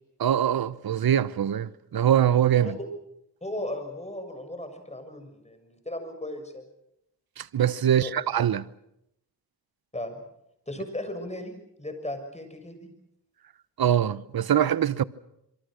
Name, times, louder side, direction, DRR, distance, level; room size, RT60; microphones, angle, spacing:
voice 1, 0.2-2.7 7.4-8.7 13.8-15.0, right 10 dB, 60° right, 1.0 m, -23 dB
voice 2, 3.4-6.7 7.8-8.2 9.9-10.2 10.7-12.9, left 1 dB, 15° left, 6.8 m, -36 dB
26.5 x 24.0 x 6.5 m
cardioid pair, 65°, 41 cm